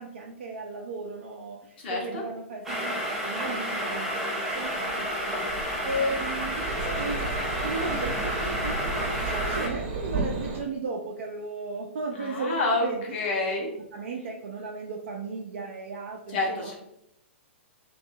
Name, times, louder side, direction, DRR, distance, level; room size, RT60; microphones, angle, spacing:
voice 1, 0.0-13.2 13.9-16.7, right 2 dB, 65° right, -1 dB, 0.4 m, -35 dB
sound 1, 2.6-9.7, equal, 5° right, 0.7 m, -30 dB
sound 2, 4.5-10.6, right 3 dB, 45° right, 0.8 m, -34 dB
voice 2, 12.2-13.7 16.3-16.7, left 2 dB, 55° left, -2 dB, 0.8 m, -28 dB
2.6 x 2.2 x 2.6 m, 0.80 s
figure-of-eight pair, 110°, 7 cm